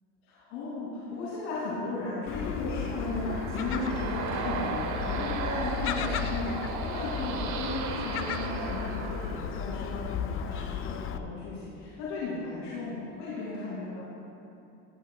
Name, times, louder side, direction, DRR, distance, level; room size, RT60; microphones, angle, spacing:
voice 1, 0.3-14.0, left 2 dB, 80° left, -8 dB, 2.6 m, -35 dB
Gull seagull, 2.3-11.2, left 8 dB, 35° left, 0.4 m, -34 dB
sound 1, 2.4-9.9, right 7 dB, 55° right, 0.9 m, -37 dB
17.0 x 11.5 x 2.3 m, 2.9 s
supercardioid pair, 120°, 36 cm